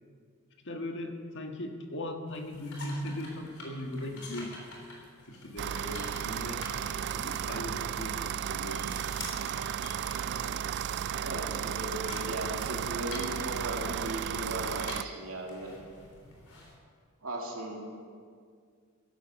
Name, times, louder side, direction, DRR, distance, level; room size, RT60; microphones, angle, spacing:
voice 1, 0.6-4.8 5.3-6.7 7.1-9.0, left 1 dB, 60° left, 4 dB, 1.5 m, -39 dB
sound 1, 2.3-16.8, left 2 dB, 85° left, 3.8 m, -48 dB
sound 2, 5.6-15.0, right 9 dB, 55° right, 0.4 m, -34 dB
voice 2, 10.2-10.6 11.2-15.7 17.2-17.8, right 1 dB, 75° right, -1 dB, 2.6 m, -37 dB
15.5 x 11.5 x 6.4 m, 2.1 s
head